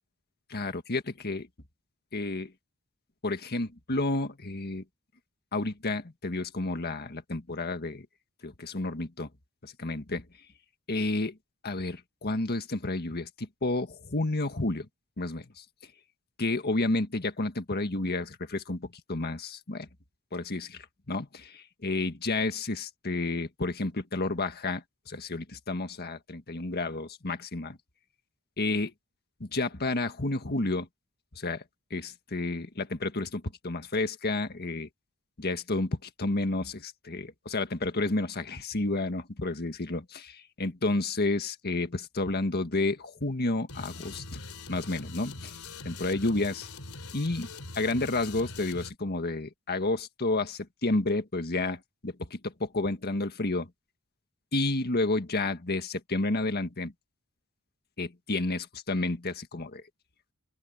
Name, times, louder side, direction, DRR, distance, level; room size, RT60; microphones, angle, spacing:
voice 1, 0.5-1.5 2.1-2.5 3.2-4.8 5.5-8.1 8.4-9.3 9.6-10.2 10.9-11.4 11.6-14.9 15.2-15.6 16.4-19.9 20.3-27.8 28.6-28.9 29.4-30.9 31.3-31.6 31.9-34.9 35.4-44.4 44.7-45.6 45.8-46.7 47.1-47.5 47.7-53.7 54.5-56.9 58.0-59.8, left 2 dB, 45° left, 1.7 m, -31 dB
sound 1, 43.7-48.9, left 3 dB, 70° left, 4.2 m, -43 dB
open air
head